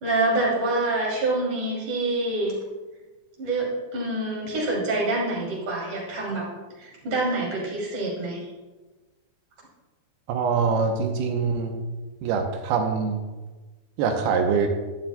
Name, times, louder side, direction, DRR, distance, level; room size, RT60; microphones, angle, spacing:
voice 1, 0.0-2.6 3.4-6.5 6.8-8.5, right 2 dB, 55° right, -4 dB, 4.1 m, -26 dB
voice 2, 10.3-11.8 12.2-13.2 14.0-14.7, right 5 dB, 80° right, 4 dB, 2.7 m, -24 dB
13.0 x 10.5 x 2.2 m, 1.2 s
omnidirectional pair, 4.4 m